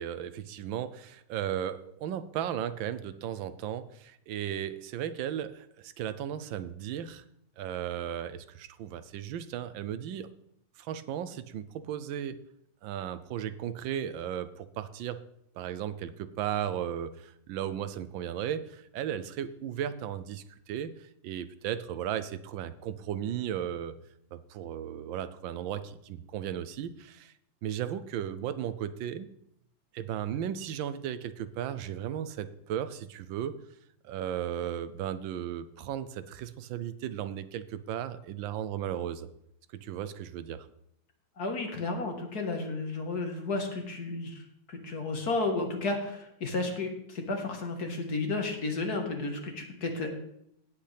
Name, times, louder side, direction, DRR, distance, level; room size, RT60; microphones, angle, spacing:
voice 1, 0.0-7.2 7.6-10.3 10.8-12.4 12.8-15.2 15.5-23.9 24.3-27.3 27.6-29.3 29.9-33.6 34.0-39.3 39.7-40.7, right 10 dB, 80° right, 13 dB, 1.4 m, -35 dB
voice 2, 41.4-44.4 44.7-50.1, left 3 dB, 55° left, 3 dB, 2.0 m, -32 dB
17.0 x 7.9 x 3.4 m, 0.75 s
omnidirectional pair, 2.1 m